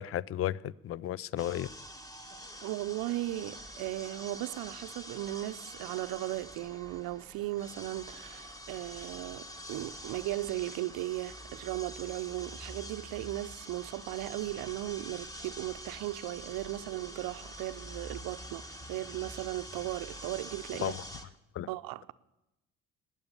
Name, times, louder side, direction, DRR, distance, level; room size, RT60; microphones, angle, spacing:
voice 1, 0.0-1.7 20.8-21.0 21.5-21.7, left 12 dB, 35° left, 0.5 m, -34 dB
sound 1, 1.4-21.3, equal, 10° left, 1.5 m, -46 dB
voice 2, 2.6-20.9 21.7-22.1, right 16 dB, 60° right, 0.7 m, -37 dB
19.0 x 9.3 x 6.9 m
hypercardioid pair, 55°, 39 cm